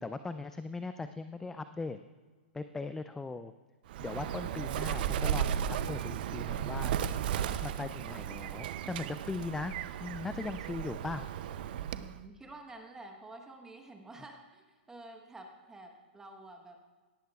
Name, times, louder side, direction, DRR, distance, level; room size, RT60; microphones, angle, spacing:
voice 1, 0.0-2.0 2.5-3.5 4.0-6.9 7.6-9.7 10.0-11.2, left 3 dB, 5° left, 10 dB, 0.3 m, -39 dB
Bird, 3.9-12.2, right 9 dB, 55° right, 0.5 m, -35 dB
voice 2, 11.9-16.8, right 2 dB, 10° right, 3 dB, 1.1 m, -50 dB
17.0 x 14.0 x 2.3 m, 1.4 s
hypercardioid pair, 130°, 6 cm